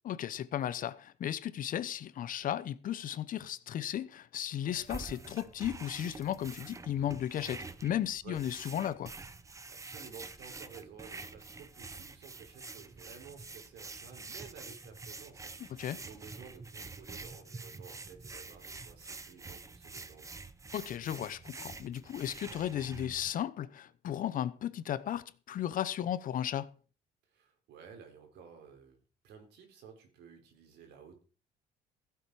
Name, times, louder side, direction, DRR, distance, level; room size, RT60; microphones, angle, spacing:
voice 1, 0.0-9.1 15.7-16.0 20.7-26.7, left 11 dB, 55° left, 0.8 m, -35 dB
sound 1, 4.7-23.3, right 3 dB, 20° right, 0.9 m, -47 dB
voice 2, 9.7-20.4 27.3-29.0 29.2-31.2, right 7 dB, 80° right, 4.1 m, -53 dB
15.5 x 8.3 x 4.8 m
cardioid pair, 110°, 17 cm